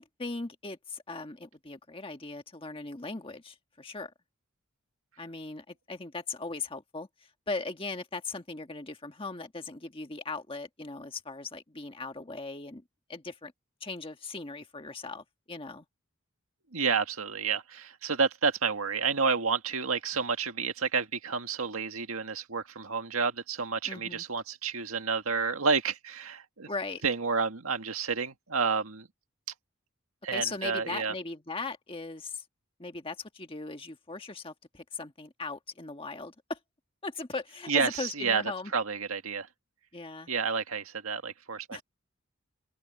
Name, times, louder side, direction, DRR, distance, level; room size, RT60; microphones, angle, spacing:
voice 1, 0.0-4.1 5.2-7.1 7.5-12.8 13.1-13.5 13.8-15.8 23.9-24.2 26.6-27.0 30.3-32.4 32.8-36.6 37.0-38.7 39.9-40.3 41.7-41.8, left 3 dB, 25° left, 1.6 m, -38 dB
voice 2, 16.7-26.7 27.0-29.1 30.2-31.1 37.7-38.4 38.7-39.5 40.3-41.8, right 5 dB, 80° right, 1.9 m, -30 dB
open air
head